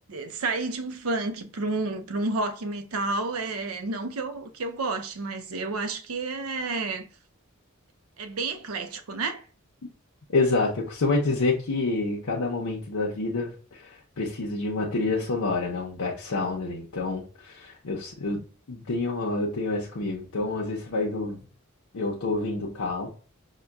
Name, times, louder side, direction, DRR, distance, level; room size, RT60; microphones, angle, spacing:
voice 1, 0.1-7.1 8.2-9.4, right 3 dB, 85° right, 0.6 m, -30 dB
voice 2, 10.3-21.4 21.9-23.1, left 3 dB, 90° left, 0.7 m, -28 dB
5.5 x 2.2 x 2.2 m
head